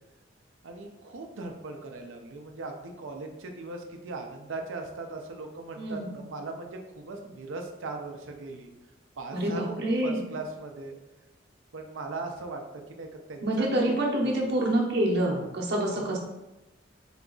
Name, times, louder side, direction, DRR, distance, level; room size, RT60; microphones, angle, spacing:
voice 1, 0.6-8.7 9.2-9.7 10.0-11.0 11.7-12.6 12.9-13.9 14.2-14.5 16.0-16.2, right 3 dB, 85° right, 3 dB, 0.6 m, -39 dB
voice 2, 5.8-6.1 9.3-10.2 13.4-16.2, right 1 dB, 60° right, -2 dB, 0.8 m, -27 dB
3.9 x 2.3 x 3.8 m, 1.0 s
head